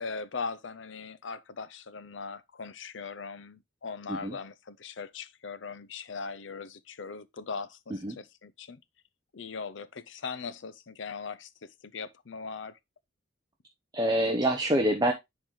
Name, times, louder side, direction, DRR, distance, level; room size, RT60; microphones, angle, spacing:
voice 1, 0.0-8.8 9.3-12.8, left 5 dB, 70° left, 0.6 m, -40 dB
voice 2, 13.9-15.1, right 1 dB, 20° right, 0.8 m, -26 dB
10.0 x 3.9 x 3.1 m
head